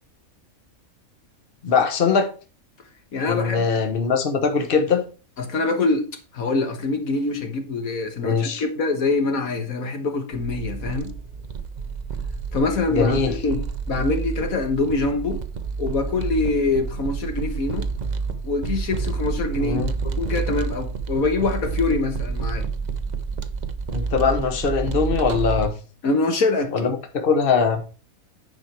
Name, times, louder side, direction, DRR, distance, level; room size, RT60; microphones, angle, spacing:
voice 1, 1.6-2.3 3.2-5.0 8.2-8.6 12.9-13.3 19.6-19.9 23.9-25.7 26.7-27.8, left 5 dB, 40° left, 1.4 m, -21 dB
voice 2, 3.1-3.9 5.4-6.1 6.3-11.1 12.5-13.6 13.9-15.4 15.8-17.9 18.4-19.8 20.0-22.7 26.0-26.9, left 3 dB, 75° left, 1.7 m, -24 dB
sound 1, 10.3-25.7, right 5 dB, 40° right, 0.6 m, -29 dB
10.5 x 5.1 x 4.5 m
omnidirectional pair, 1.5 m